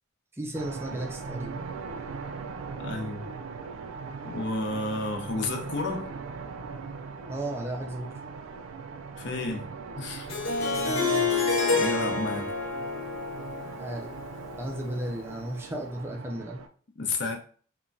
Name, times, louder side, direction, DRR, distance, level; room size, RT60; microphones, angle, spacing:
voice 1, 0.3-1.6 7.3-8.1 10.8-11.3 13.8-14.1 14.6-16.6, right 1 dB, 10° right, 0.4 m, -35 dB
sound 1, 0.5-16.7, right 5 dB, 90° right, 0.4 m, -40 dB
voice 2, 2.8-3.3 4.2-6.1 9.2-9.7 10.0-10.4 11.7-12.5 17.0-17.4, left 2 dB, 60° left, 0.5 m, -31 dB
Harp, 10.3-15.2, left 3 dB, 80° left, 1.0 m, -29 dB
3.0 x 2.2 x 2.5 m
head